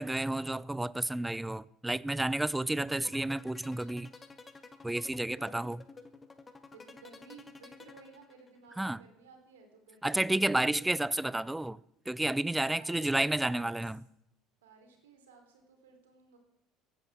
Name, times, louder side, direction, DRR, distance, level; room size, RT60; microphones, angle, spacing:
voice 1, 0.0-4.1 4.8-5.8 8.8-9.0 10.0-11.8 12.1-14.0, right 1 dB, 5° right, 0.4 m, -31 dB
sound 1, 2.7-8.7, left 4 dB, 20° left, 1.7 m, -51 dB
voice 2, 5.3-5.6 6.7-10.9 12.6-13.7 14.6-16.4, right 4 dB, 75° right, 3.5 m, -56 dB
15.5 x 11.0 x 6.3 m
hypercardioid pair, 65°, 0 cm